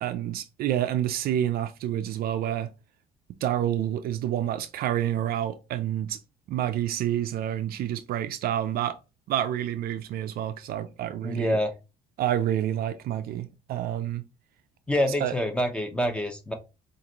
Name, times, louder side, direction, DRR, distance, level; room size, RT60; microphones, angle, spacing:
voice 1, 0.0-2.7 3.4-6.2 6.5-9.0 9.3-11.6 12.2-14.2 15.2-15.4, right 11 dB, 65° right, 0.5 m, -28 dB
voice 2, 11.2-11.7 14.9-16.5, equal, 5° left, 0.9 m, -26 dB
4.9 x 2.5 x 2.9 m
cardioid pair, 110°, 17 cm